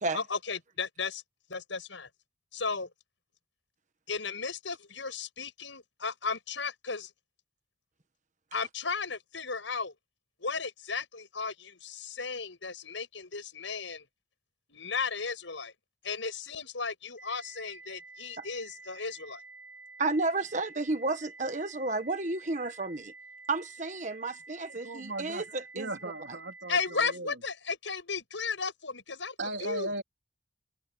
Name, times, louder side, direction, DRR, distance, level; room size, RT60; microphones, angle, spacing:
voice 1, 0.1-1.2 1.5-2.1 2.5-2.9 4.1-7.1 8.5-9.9 10.4-14.0 14.7-15.7 16.0-19.4 26.7-29.3 29.6-29.9, left 5 dB, 85° left, 6.2 m, -35 dB
sound 1, 17.2-27.2, right 3 dB, 45° left, 4.6 m, -50 dB
voice 2, 20.0-23.1 23.5-25.9, right 3 dB, 40° right, 1.5 m, -32 dB
voice 3, 24.8-25.4 25.7-27.4 29.4-30.0, right 2 dB, 75° right, 3.8 m, -37 dB
open air
head